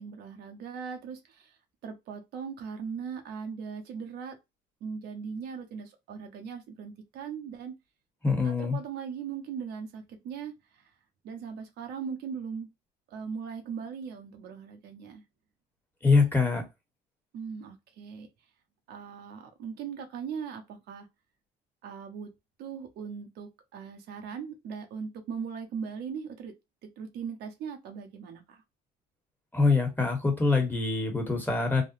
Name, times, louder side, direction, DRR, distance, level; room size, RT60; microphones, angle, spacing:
voice 1, 0.0-1.5 1.8-4.4 4.8-7.7 8.4-10.5 11.2-12.7 13.1-15.2 17.3-18.3 18.9-21.1 21.8-22.3 22.6-26.5 26.8-28.6, right 6 dB, 75° right, 0.8 m, -39 dB
voice 2, 8.2-8.8 16.0-16.6 29.5-31.8, left 4 dB, 10° left, 1.2 m, -24 dB
3.3 x 2.2 x 2.7 m
cardioid pair, 110°, 17 cm